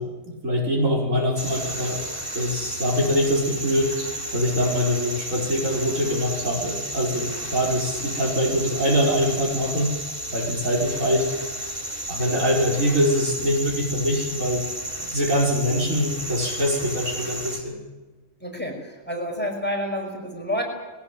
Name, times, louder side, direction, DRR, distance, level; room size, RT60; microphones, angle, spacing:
voice 1, 0.0-2.0 2.3-4.0 4.3-9.9 10.3-11.3 12.1-14.7 15.1-17.8, equal, 70° right, -2 dB, 5.6 m, -23 dB
sound 1, 1.4-17.6, right 1 dB, 20° right, 3.1 m, -32 dB
voice 2, 18.4-20.6, equal, 5° left, 1 dB, 5.1 m, -29 dB
20.5 x 18.5 x 9.3 m, 1.2 s
omnidirectional pair, 1.4 m